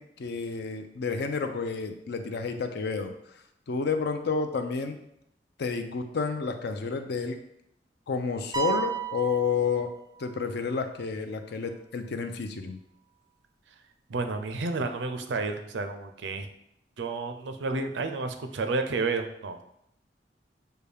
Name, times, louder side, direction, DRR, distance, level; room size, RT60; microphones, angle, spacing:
voice 1, 0.0-3.1 3.7-5.0 5.6-7.4 8.1-9.9 10.2-12.8, left 5 dB, 65° left, 7 dB, 0.5 m, -30 dB
sound 1, 8.5-10.4, right 7 dB, 20° right, 0.4 m, -33 dB
voice 2, 14.1-16.5 17.0-19.6, right 3 dB, 80° right, 7 dB, 0.5 m, -31 dB
6.7 x 2.2 x 3.3 m, 0.77 s
head